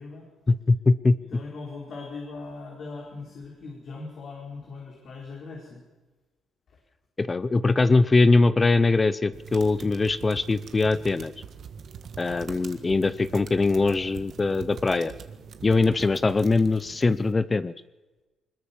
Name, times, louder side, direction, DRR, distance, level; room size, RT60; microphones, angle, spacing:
voice 1, 0.5-1.2 7.2-11.3 12.2-15.1 15.6-17.7, left 3 dB, 25° left, 15 dB, 0.7 m, -22 dB
voice 2, 1.3-5.8, left 3 dB, 60° left, -1 dB, 4.6 m, -39 dB
sound 1, 9.3-17.3, right 7 dB, 60° right, 1.7 m, -43 dB
21.0 x 20.5 x 7.2 m, 1.2 s
cardioid pair, 90°, 0 cm